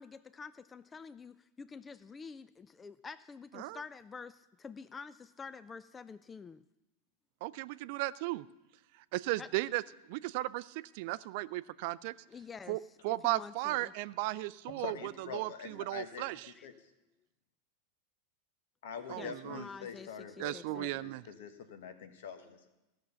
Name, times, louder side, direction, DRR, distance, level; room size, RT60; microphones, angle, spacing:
voice 1, 0.0-6.6 9.4-9.5 12.3-12.8 13.1-13.9 15.7-15.8 16.5-16.7 19.1-20.9, left 5 dB, 20° left, 14 dB, 0.4 m, -48 dB
voice 2, 7.4-8.4 9.1-9.8 10.1-12.1 12.7-12.8 13.0-16.5 19.1-19.6 20.4-21.2, right 18 dB, 60° right, 17 dB, 0.4 m, -35 dB
voice 3, 14.8-16.7 18.8-22.7, left 7 dB, 70° left, 8 dB, 1.3 m, -45 dB
14.5 x 6.3 x 6.9 m, 0.98 s
hypercardioid pair, 95°, 0 cm